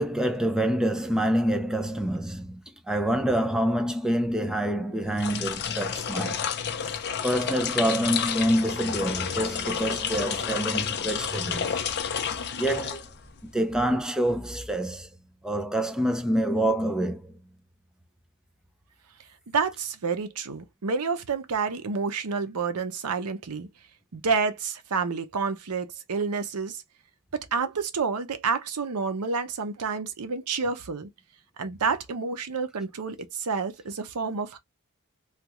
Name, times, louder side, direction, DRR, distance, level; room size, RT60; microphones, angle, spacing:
voice 1, 0.0-2.6 2.9-6.4 6.9-7.0 7.2-11.8 12.6-13.0 13.4-15.1 15.4-17.3, right 1 dB, 5° right, 0.4 m, -26 dB
sound 1, 5.1-13.5, left 7 dB, 50° left, 0.5 m, -30 dB
voice 2, 19.5-23.7 24.1-26.8 27.3-31.1 31.6-34.6, right 5 dB, 85° right, 0.7 m, -29 dB
3.3 x 2.4 x 2.9 m
head